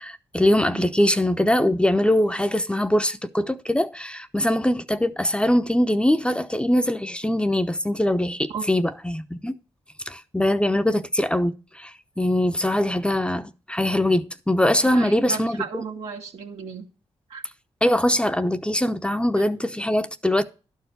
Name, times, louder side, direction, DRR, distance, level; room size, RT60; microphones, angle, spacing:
voice 1, 0.0-9.5 10.1-15.8 17.8-20.4, left 1 dB, 10° left, 0.8 m, -22 dB
voice 2, 14.8-16.9 17.3-17.4 19.4-19.5, right 6 dB, 80° right, 2.0 m, -34 dB
11.5 x 4.7 x 8.0 m
supercardioid pair, 50°, 11 cm